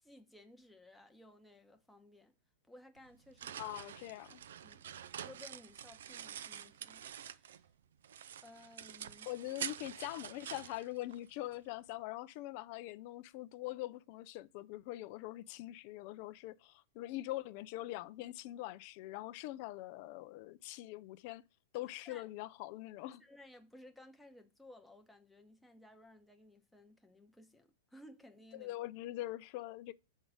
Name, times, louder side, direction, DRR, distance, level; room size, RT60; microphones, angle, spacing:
voice 1, 0.0-2.3 2.7-3.6 4.6-7.7 8.4-9.3 22.0-22.3 23.2-28.7, left 1 dB, 5° left, 0.9 m, -58 dB
sound 1, 3.0-7.7 8.0-11.6, right 9 dB, 75° right, 0.4 m, -47 dB
voice 2, 3.6-4.4 9.2-21.4 21.7-23.2 28.5-29.9, left 16 dB, 50° left, 0.4 m, -43 dB
6.2 x 3.8 x 6.2 m
hypercardioid pair, 120°, 0 cm